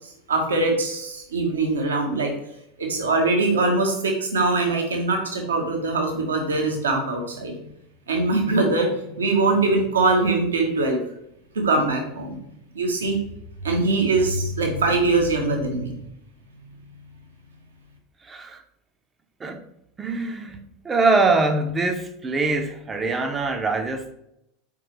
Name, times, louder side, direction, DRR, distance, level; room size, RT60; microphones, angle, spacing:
voice 1, 0.3-2.3 2.8-7.7 8.1-11.0 11.5-13.2 13.6-15.9, right 3 dB, 75° right, 1.0 m, -22 dB
voice 2, 18.2-18.6 19.4-19.6 20.0-24.1, right 3 dB, 20° right, 0.7 m, -23 dB
4.5 x 3.7 x 3.1 m
figure-of-eight pair, 80°, 0 cm